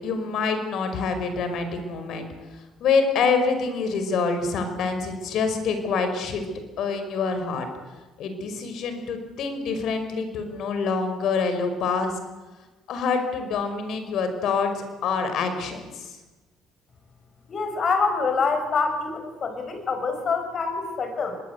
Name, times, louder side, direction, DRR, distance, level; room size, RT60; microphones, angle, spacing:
voice 1, 0.0-2.3 2.8-6.5 6.8-7.7 8.2-12.1 12.9-16.2, left 5 dB, 65° left, 8 dB, 5.3 m, -26 dB
voice 2, 17.5-21.4, left 4 dB, 50° left, 7 dB, 6.6 m, -26 dB
25.0 x 21.0 x 8.2 m, 1.2 s
supercardioid pair, 60°, 0 cm